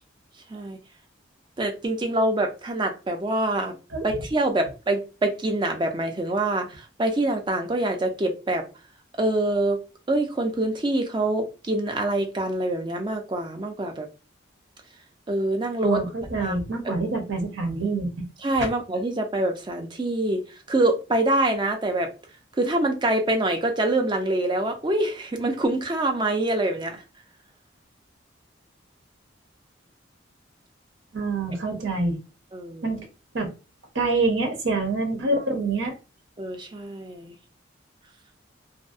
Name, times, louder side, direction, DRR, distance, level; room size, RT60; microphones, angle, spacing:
voice 1, 1.6-3.7 4.0-8.6 9.2-9.8 10.1-14.1 15.3-16.0 16.4-16.5 16.8-16.9 18.4-22.1 22.6-27.0 32.5-32.9 36.4-37.4, right 1 dB, 25° right, 0.4 m, -25 dB
voice 2, 15.8-18.3 31.1-32.2 32.8-33.1 33.3-33.5 33.9-35.9, right 3 dB, 75° right, 0.7 m, -26 dB
2.6 x 2.0 x 2.3 m
head